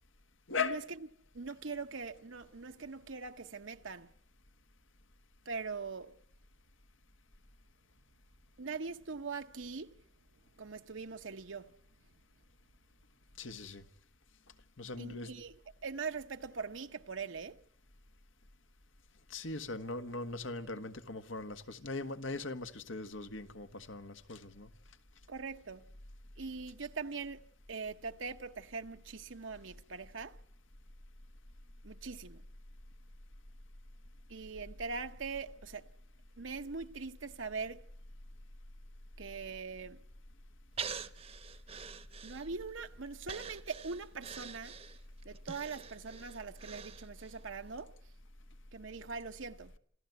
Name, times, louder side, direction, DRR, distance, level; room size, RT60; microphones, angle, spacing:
voice 1, 0.5-0.9 13.4-13.8 14.8-15.3 19.3-24.7, left 3 dB, 85° left, 1.5 m, -39 dB
voice 2, 1.3-4.1 5.5-6.1 8.6-9.9 10.6-11.7 15.0-15.5 15.8-17.6 25.3-25.8 26.4-27.4 27.7-30.4 31.8-32.4 34.3-35.9 36.4-37.8 39.2-40.0 42.2-44.7 45.2-47.9 48.7-49.7, right 4 dB, 80° right, 0.9 m, -42 dB
Breathing, 40.8-42.8 43.2-47.4 47.8-47.9, right 6 dB, 30° right, 0.9 m, -45 dB
27.5 x 15.0 x 9.3 m
head